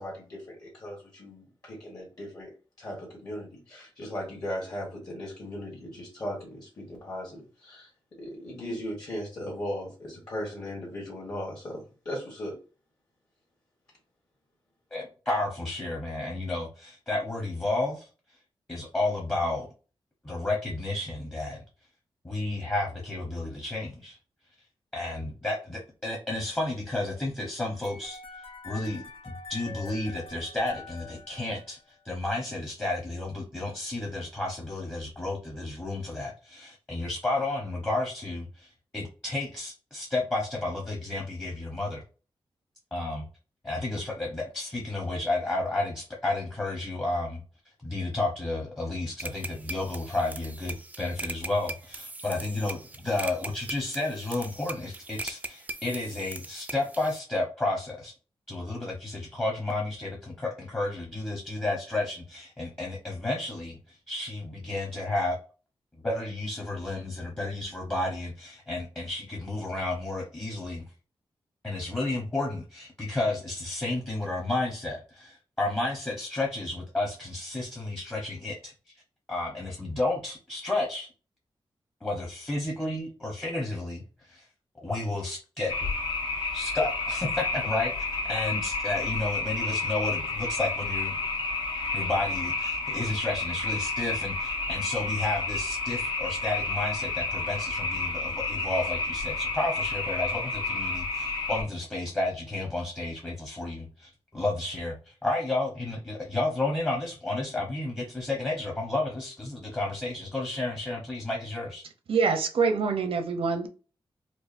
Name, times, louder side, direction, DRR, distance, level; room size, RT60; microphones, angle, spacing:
voice 1, 0.0-2.5 2.8-7.9 8.2-12.6, equal, 40° left, 1.4 m, -37 dB
voice 2, 14.9-18.1 18.7-19.7 20.2-21.6 22.2-24.2 24.9-28.2 28.6-31.8 32.0-42.0 42.9-43.2 43.6-47.4 47.8-58.1 58.5-65.4 66.0-70.8 71.6-78.7 79.3-81.1 82.0-84.4 84.8-85.7 86.5-91.1 91.9-111.8, left 2 dB, 20° left, 1.0 m, -32 dB
sound 1, 27.8-31.9, left 3 dB, 75° left, 0.8 m, -44 dB
sound 2, 49.2-57.2, right 2 dB, 15° right, 0.4 m, -40 dB
sound 3, 85.7-101.6, left 3 dB, 55° left, 1.0 m, -30 dB
voice 3, 112.1-113.7, right 5 dB, 80° right, 0.7 m, -25 dB
4.5 x 2.4 x 2.6 m
wide cardioid pair, 160°, 9 cm